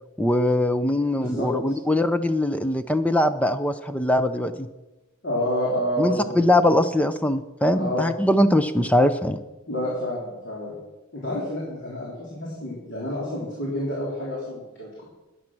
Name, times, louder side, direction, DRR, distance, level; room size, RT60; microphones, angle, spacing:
voice 1, 0.2-4.7 6.0-9.4, left 1 dB, 5° left, 10 dB, 0.5 m, -21 dB
voice 2, 1.1-1.8 5.2-6.7 7.7-8.1 9.7-10.8 11.1-15.0, left 1 dB, 55° left, -5 dB, 3.5 m, -29 dB
14.0 x 9.8 x 6.1 m, 1.1 s
head